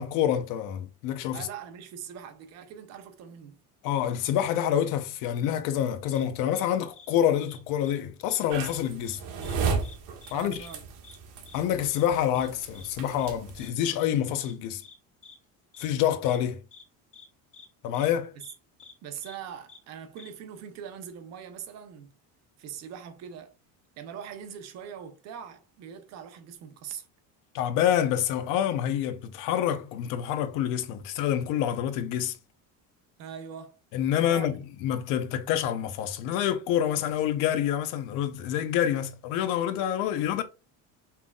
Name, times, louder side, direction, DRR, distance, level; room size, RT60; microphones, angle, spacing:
voice 1, 0.0-1.5 3.8-9.2 10.3-10.6 11.5-14.8 15.8-16.6 17.8-18.3 27.5-32.4 33.9-40.4, left 10 dB, 60° left, 0.7 m, -27 dB
voice 2, 1.3-3.6 10.3-10.8 19.0-22.1 22.6-23.5 24.0-27.1 33.2-33.8 34.3-34.6, right 8 dB, 45° right, 0.8 m, -42 dB
sound 1, 6.1-6.2 6.5-6.7 6.9-7.1 7.4-8.0 8.2-8.4 8.6-9.2 9.4-9.6 9.8-10.0 10.2-10.3 10.6-10.8 11.0-11.2 11.4-11.6 11.9-12.0 12.3-12.5 12.7-12.9 13.2-13.3 13.6-13.7 14.0-14.1 14.4-14.5 14.8-14.9 15.2-15.4 15.7-15.9 16.2-16.4 16.7-16.8 17.1-17.3 17.5-17.7 17.9-18.1 18.4-18.5 18.8-18.9 19.2-19.4 19.7-19.8 20.2-20.3, left 5 dB, 20° left, 0.5 m, -50 dB
sound 2, 8.5-13.7, right 5 dB, 80° right, 1.5 m, -34 dB
5.6 x 3.8 x 2.3 m
cardioid pair, 180°, 36 cm